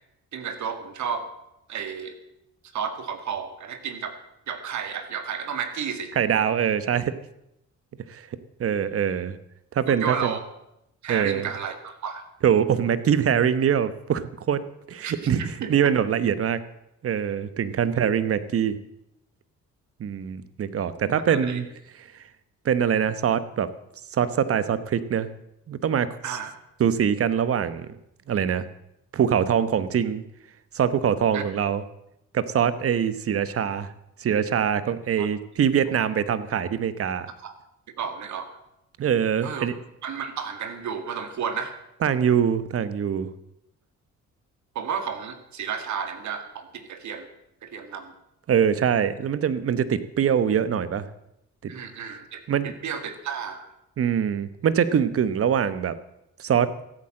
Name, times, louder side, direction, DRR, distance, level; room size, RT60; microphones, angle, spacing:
voice 1, 0.3-1.3 1.7-2.2 2.7-4.1 4.5-6.1 9.9-10.4 11.0-12.2 15.0-15.7 21.1-21.6 26.2-26.5 31.3-31.4 35.2-35.3 37.4-37.5 38.0-38.5 39.4-39.7 40.0-41.8 44.8-47.3 47.6-48.1 51.7-53.7, right 7 dB, 70° right, 9 dB, 2.0 m, -32 dB
voice 2, 6.2-7.2 8.1-8.3 8.6-9.4 9.7-10.3 11.1-11.5 12.4-14.6 14.9-15.4 15.7-16.6 17.0-18.8 20.0-21.6 22.6-23.7 24.1-25.3 25.7-26.4 26.8-28.0 28.3-28.6 29.1-30.2 30.7-31.8 32.3-33.9 34.2-37.3 39.0-39.7 42.0-43.3 48.5-51.1 51.6-51.7 52.5-52.7 54.0-56.0 56.4-56.7, right 8 dB, 50° right, 14 dB, 1.0 m, -23 dB
15.0 x 8.8 x 7.7 m, 0.83 s
cardioid pair, 90°, 30 cm